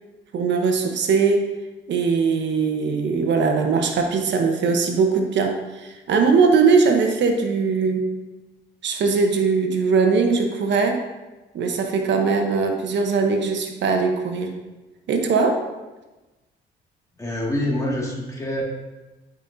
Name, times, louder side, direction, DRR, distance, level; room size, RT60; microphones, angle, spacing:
voice 1, 0.3-1.4 1.9-8.1 8.8-11.0 11.5-14.5 15.1-15.6, right 5 dB, 65° right, 4 dB, 0.9 m, -20 dB
voice 2, 17.2-18.6, left 1 dB, 15° left, -3 dB, 2.0 m, -26 dB
11.0 x 5.2 x 2.7 m, 1.1 s
cardioid pair, 90°, 20 cm